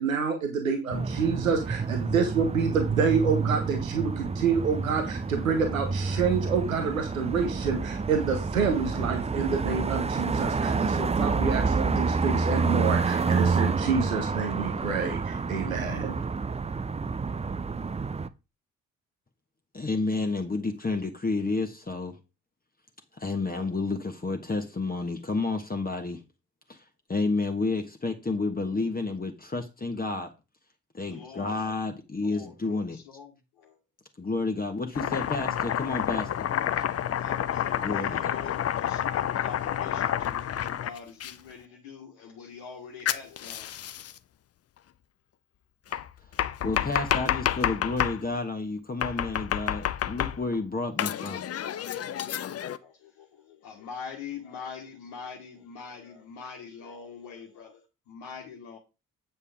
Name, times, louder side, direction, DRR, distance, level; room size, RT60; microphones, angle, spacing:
voice 1, 0.0-16.2, right 5 dB, 85° right, 1.0 m, -28 dB
sound 1, 0.9-18.3, right 4 dB, 15° right, 0.6 m, -28 dB
voice 2, 19.7-22.1 23.2-26.2 26.7-26.8 27.1-30.3 30.9-33.0 34.2-36.4 37.8-38.3 45.9-46.0 46.6-51.4, left 3 dB, 20° left, 1.4 m, -30 dB
voice 3, 31.1-31.5 32.2-32.5 32.9-33.3 33.6-33.8 36.7-43.7 52.8-58.8, left 6 dB, 65° left, 1.7 m, -44 dB
Domestic sounds home sounds, 34.9-41.3 43.1-44.2 45.9-48.2 49.0-50.6 51.0-52.8, left 10 dB, 40° left, 0.7 m, -29 dB
8.3 x 6.9 x 3.6 m
figure-of-eight pair, 40°, 40 cm